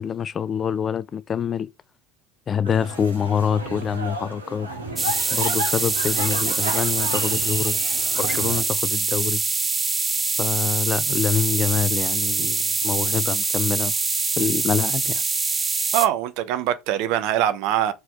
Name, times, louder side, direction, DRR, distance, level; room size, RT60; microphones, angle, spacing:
voice 1, 0.0-1.7 2.5-4.7 5.3-7.8 8.2-9.4 10.4-13.9 14.4-15.2, left 7 dB, 30° left, 0.4 m, -25 dB
sound 1, 2.6-8.6, right 1 dB, 85° right, 2.0 m, -32 dB
sound 2, 5.0-16.1, right 4 dB, 20° right, 0.9 m, -24 dB
voice 2, 15.9-17.9, right 12 dB, 55° right, 0.9 m, -22 dB
6.0 x 4.8 x 5.0 m
figure-of-eight pair, 70°, 0 cm